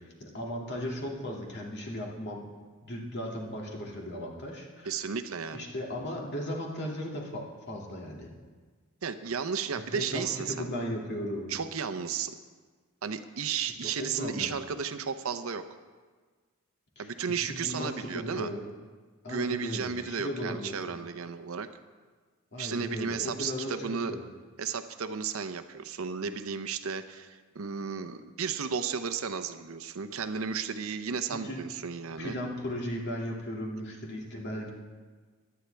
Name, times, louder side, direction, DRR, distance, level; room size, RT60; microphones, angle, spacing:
voice 1, 0.0-2.5 2.8-5.0 5.5-8.3 9.9-11.5 13.7-14.5 17.0-18.6 19.2-21.0 22.5-24.2 31.3-31.6 32.2-34.7, equal, 55° left, -1 dB, 2.2 m, -36 dB
voice 2, 4.9-5.7 9.0-10.7 11.5-12.4 13.0-15.6 17.0-18.5 19.3-21.7 22.6-24.1 24.6-32.4, right 6 dB, 75° right, 10 dB, 0.7 m, -34 dB
17.5 x 11.5 x 3.4 m, 1.4 s
head